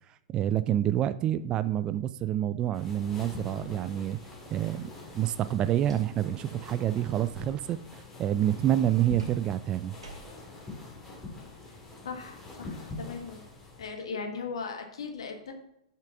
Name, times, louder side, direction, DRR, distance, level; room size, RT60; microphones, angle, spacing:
voice 1, 0.3-4.2 4.5-9.9, right 11 dB, 25° right, 14 dB, 0.4 m, -28 dB
sound 1, 2.7-13.9, left 3 dB, 15° left, 2.3 m, -44 dB
sound 2, 5.6-6.4 6.7-7.1 9.2-10.6, right 3 dB, 70° right, 2.6 m, -47 dB
voice 2, 12.0-13.4 13.8-15.5, left 5 dB, 65° left, 5 dB, 1.5 m, -38 dB
6.8 x 5.8 x 5.8 m, 0.81 s
figure-of-eight pair, 105°, 3 cm